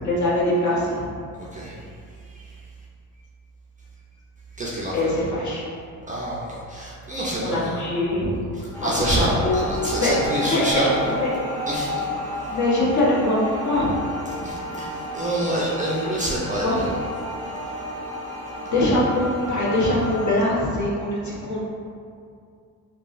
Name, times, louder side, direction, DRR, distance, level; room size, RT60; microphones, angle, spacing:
voice 1, 0.0-1.0 4.9-5.6 7.4-8.3 8.6-9.7 10.0-10.1 10.4-10.8 11.1-11.3 12.5-13.9 16.6-16.8 18.7-21.7, left 1 dB, 45° left, -6 dB, 1.0 m, -23 dB
voice 2, 1.5-2.6 4.5-5.1 6.1-7.9 8.5-11.1 11.7-12.1 14.4-16.9, right 1 dB, 20° right, -6 dB, 0.5 m, -27 dB
sound 1, 8.7-20.3, left 1 dB, 5° left, 1.0 m, -32 dB
3.6 x 2.0 x 2.5 m, 2.3 s
supercardioid pair, 65°, 41 cm